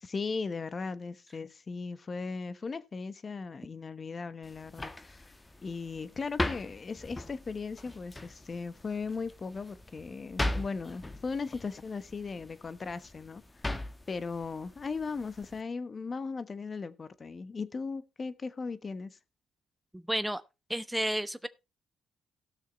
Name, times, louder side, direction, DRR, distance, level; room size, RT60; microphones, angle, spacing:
voice 1, 0.0-5.3 5.6-13.4 13.7-19.2, left 4 dB, 35° left, 1.0 m, -37 dB
sound 1, 4.4-15.6, left 1 dB, 15° left, 1.2 m, -39 dB
voice 2, 19.9-20.4 20.7-21.5, right 1 dB, 5° right, 0.6 m, -31 dB
17.5 x 6.5 x 3.0 m
cardioid pair, 90°, 0 cm